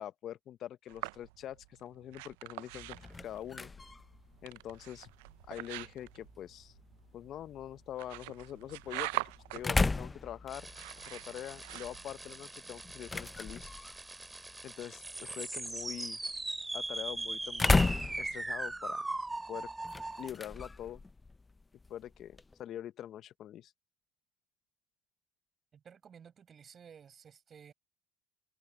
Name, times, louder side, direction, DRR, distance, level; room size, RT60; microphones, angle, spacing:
voice 1, 0.0-3.7 4.4-5.1 5.5-6.7 7.1-9.2 9.5-10.7 11.0-13.7 14.6-16.2 16.7-19.1 19.5-19.7 20.2-21.0 21.9-23.7, left 11 dB, 50° left, 0.9 m, -44 dB
sound 1, 0.9-12.4, right 23 dB, 80° right, 0.4 m, -44 dB
sound 2, 2.7-22.6, left 3 dB, 20° left, 0.6 m, -37 dB
sound 3, 10.5-20.3, right 2 dB, 10° right, 2.3 m, -40 dB
voice 2, 25.7-27.7, right 7 dB, 40° right, 6.7 m, -55 dB
supercardioid pair, 90°, 0 cm